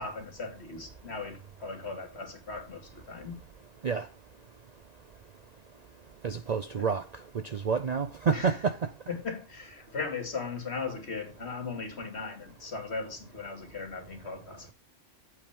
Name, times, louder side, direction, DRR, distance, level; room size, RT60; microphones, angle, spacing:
voice 1, 0.0-3.4 8.3-8.5 9.1-14.7, left 4 dB, 60° left, 2.6 m, -38 dB
voice 2, 6.2-7.0 7.3-8.9, right 5 dB, 50° right, 0.5 m, -28 dB
8.6 x 8.1 x 3.5 m
omnidirectional pair, 1.2 m